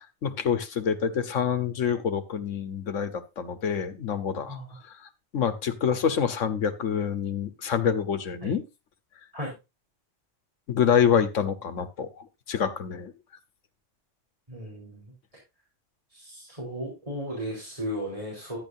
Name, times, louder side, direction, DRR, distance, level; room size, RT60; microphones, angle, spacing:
voice 1, 0.2-4.6 5.3-8.6 10.7-13.1, left 7 dB, 85° left, 10 dB, 1.4 m, -26 dB
voice 2, 14.5-15.0 16.1-18.6, equal, 25° right, -4 dB, 4.3 m, -35 dB
12.5 x 9.9 x 2.7 m, 0.26 s
omnidirectional pair, 1.3 m